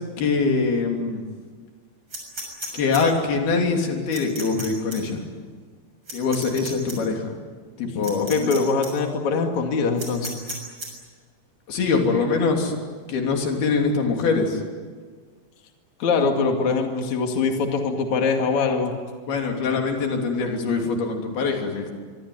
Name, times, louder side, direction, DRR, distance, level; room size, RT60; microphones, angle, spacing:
voice 1, 0.2-1.2 2.7-5.2 6.1-7.3 7.8-8.5 11.7-12.8 13.1-14.6 19.3-21.9, left 4 dB, 85° left, 2 dB, 5.1 m, -23 dB
sound 1, 2.1-3.0 4.1-4.7 4.9-5.0 6.1-6.9 8.0-8.6 8.8-8.9 10.0-10.9, right 1 dB, 30° right, 7.3 m, -34 dB
voice 2, 8.2-10.4 16.0-18.9 19.7-19.8, left 4 dB, 55° left, 3 dB, 3.5 m, -23 dB
25.0 x 24.0 x 9.5 m, 1.5 s
omnidirectional pair, 4.3 m